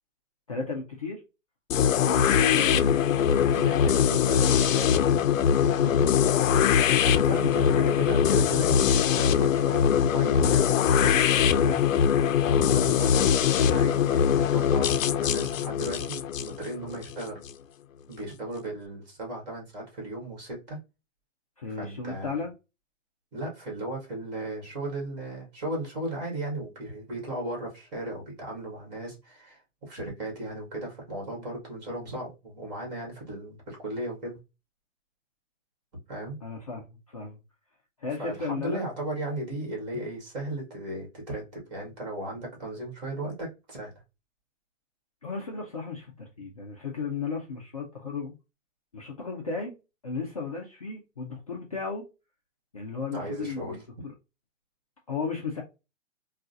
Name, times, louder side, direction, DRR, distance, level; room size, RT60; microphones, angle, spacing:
voice 1, 0.5-1.2 1.9-5.1 5.8-6.0 7.0-7.9 12.4-13.2 21.6-22.5 36.4-37.4 38.0-38.9 45.2-48.3 48.9-49.8 50.0-52.1 52.7-54.1 55.1-55.6, left 4 dB, 30° left, 0.4 m, -35 dB
sound 1, 1.7-17.5, left 8 dB, 85° left, 0.5 m, -22 dB
voice 2, 3.5-4.9 5.8-6.1 7.2-11.8 12.5-17.4 18.1-20.8 21.7-22.4 23.3-34.4 36.1-36.4 38.2-43.9 53.1-53.8, right 1 dB, 35° right, 1.9 m, -36 dB
3.6 x 2.4 x 2.6 m
hypercardioid pair, 170°, 38 cm